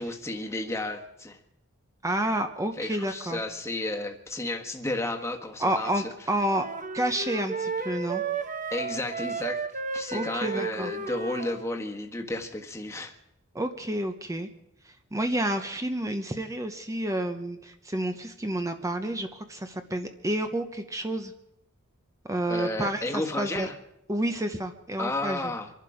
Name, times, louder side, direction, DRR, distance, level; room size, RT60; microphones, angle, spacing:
voice 1, 0.0-1.4 2.8-6.1 8.7-9.6 9.9-13.1 22.5-23.8 25.0-25.7, left 2 dB, 15° left, 3 dB, 1.5 m, -32 dB
voice 2, 2.0-3.4 5.6-6.7 6.9-8.2 10.1-10.9 13.5-14.5 14.9-21.3 22.3-23.7 24.1-25.5, right 1 dB, 15° right, 7 dB, 0.8 m, -30 dB
sound 1, 6.5-11.7, right 4 dB, 35° right, 1.0 m, -33 dB
25.5 x 11.5 x 5.0 m, 0.82 s
head